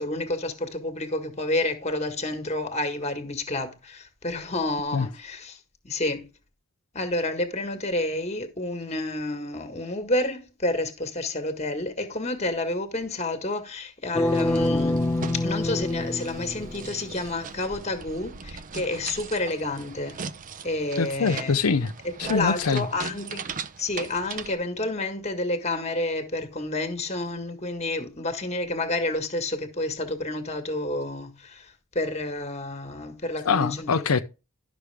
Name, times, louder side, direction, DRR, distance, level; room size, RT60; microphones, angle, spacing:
voice 1, 0.0-5.6 5.8-6.3 6.9-15.0 15.3-20.2 20.6-21.6 22.0-23.5 23.8-34.1, left 2 dB, 30° left, 1.6 m, -29 dB
sound 1, 14.1-17.2, left 1 dB, 10° left, 0.4 m, -26 dB
sound 2, 14.2-24.6, right 5 dB, 40° right, 0.6 m, -39 dB
voice 2, 21.0-21.9 22.2-22.9 33.4-34.2, left 5 dB, 85° left, 0.6 m, -24 dB
11.5 x 6.2 x 3.4 m
head